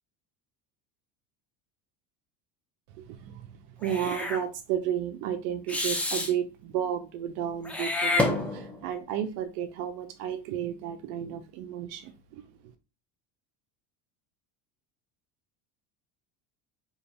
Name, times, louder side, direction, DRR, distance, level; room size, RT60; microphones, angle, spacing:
voice 1, 3.0-12.4, right 9 dB, 85° right, 0.6 m, -33 dB
Meow / Hiss, 3.8-4.4 5.7-6.3 7.6-8.9, left 2 dB, 5° left, 0.4 m, -29 dB
2.5 x 2.2 x 3.9 m
supercardioid pair, 95°, 46 cm